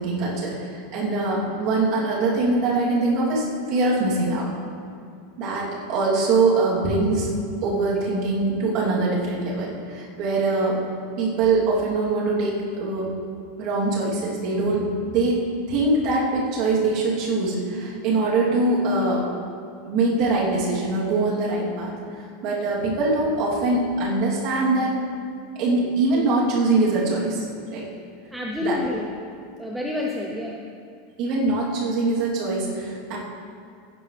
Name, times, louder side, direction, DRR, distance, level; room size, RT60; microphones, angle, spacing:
voice 1, 0.0-4.5 5.4-7.3 7.6-10.8 11.2-13.1 13.6-14.8 15.1-15.4 15.7-19.2 19.8-21.9 22.4-24.9 25.5-27.4 27.7-27.9 28.6-28.8 31.2-33.2, right 3 dB, 40° right, -6 dB, 3.0 m, -23 dB
voice 2, 25.8-26.3 28.3-29.1 29.6-30.6, left 2 dB, ahead, -1 dB, 0.6 m, -29 dB
16.0 x 9.9 x 3.4 m, 2.3 s
supercardioid pair, 170°, 0 cm